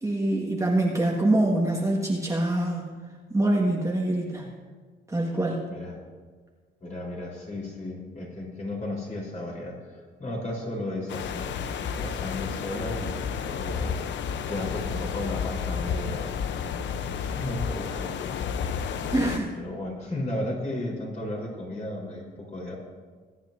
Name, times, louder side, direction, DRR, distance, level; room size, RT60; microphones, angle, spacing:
voice 1, 0.0-2.8 3.3-4.5 5.1-5.7 19.1-19.5, right 1 dB, 15° right, -2 dB, 1.7 m, -24 dB
voice 2, 6.8-11.6 11.9-14.0 14.5-16.6 17.2-18.2 18.6-22.7, left 1 dB, 35° left, -3 dB, 4.1 m, -34 dB
sound 1, 11.1-19.4, left 7 dB, 65° left, 0.7 m, -31 dB
22.0 x 9.7 x 2.7 m, 1.5 s
cardioid pair, 90°, 20 cm